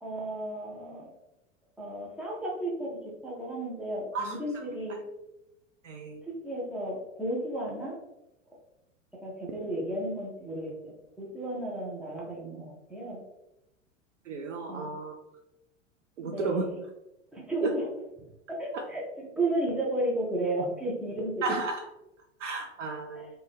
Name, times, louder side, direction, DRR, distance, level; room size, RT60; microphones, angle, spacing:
voice 1, 0.0-1.1 1.8-5.0 6.3-8.0 9.1-10.7 11.2-13.2 14.7-14.9 16.3-16.8 17.3-17.9 18.5-21.5 23.2-23.3, right 1 dB, 5° right, -5 dB, 0.3 m, -33 dB
voice 2, 5.8-6.2 14.3-15.1 16.2-16.6 21.4-21.8 22.4-23.3, right 4 dB, 70° right, 1 dB, 0.5 m, -33 dB
3.4 x 2.1 x 3.3 m, 0.92 s
figure-of-eight pair, 90°, 38 cm